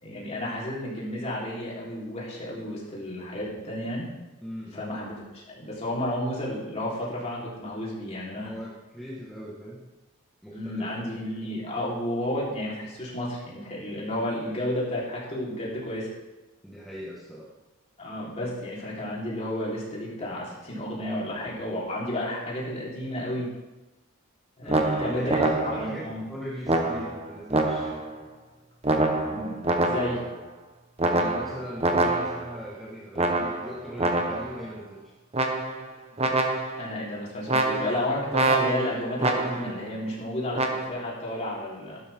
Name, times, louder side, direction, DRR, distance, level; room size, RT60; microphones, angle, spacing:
voice 1, 0.0-4.1 4.7-8.5 10.5-16.1 18.0-23.5 24.6-26.2 28.9-29.0 29.3-30.2 36.1-36.3 36.8-42.0, left 1 dB, 30° left, -6 dB, 4.1 m, -32 dB
voice 2, 4.4-4.9 8.4-9.8 10.4-10.9 16.6-17.5 24.6-28.0 31.1-35.1, equal, ahead, -6 dB, 1.7 m, -39 dB
sound 1, 24.7-26.0 26.7-28.1 28.8-30.4 31.0-32.6 33.2-34.6 35.3-35.9 36.2-36.9 37.5-39.8 40.5-40.9, right 2 dB, 30° right, 1.2 m, -26 dB
15.0 x 12.5 x 3.8 m, 1.1 s
head